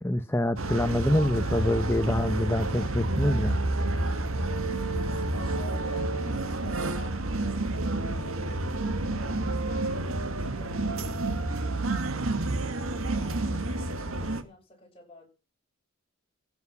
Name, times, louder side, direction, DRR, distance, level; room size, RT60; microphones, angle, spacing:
voice 1, 0.0-3.6, left 1 dB, 10° left, 0.7 m, -26 dB
sound 1, 0.6-14.4, right 2 dB, 80° right, 1.7 m, -29 dB
voice 2, 5.0-8.7 9.0-12.3 13.1-15.3, left 1 dB, 25° left, 7.0 m, -50 dB
15.0 x 8.3 x 5.9 m
head